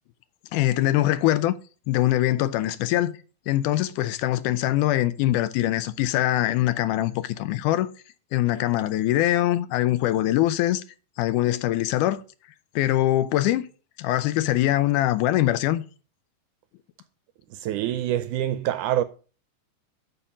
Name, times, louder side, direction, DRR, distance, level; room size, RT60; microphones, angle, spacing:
voice 1, 0.5-1.5 1.9-3.2 3.5-7.9 8.3-10.8 11.2-12.2 12.8-13.6 14.0-15.8, left 14 dB, 80° left, 2.1 m, -23 dB
voice 2, 17.5-19.0, right 12 dB, 80° right, 2.0 m, -26 dB
7.0 x 5.1 x 7.1 m
omnidirectional pair, 3.7 m